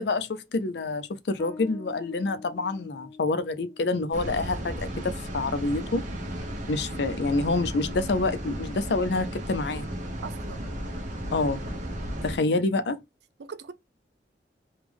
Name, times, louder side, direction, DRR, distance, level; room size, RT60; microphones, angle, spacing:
voice 1, 0.0-6.0 6.7-9.9 11.3-11.6 12.2-13.0, left 3 dB, 65° left, 0.5 m, -27 dB
Bass guitar, 1.4-8.5, left 4 dB, 10° left, 0.4 m, -49 dB
sound 1, 4.1-12.4, equal, 45° right, 1.0 m, -34 dB
voice 2, 10.2-10.6 13.4-13.7, right 5 dB, 65° right, 0.5 m, -40 dB
3.5 x 2.3 x 3.4 m
head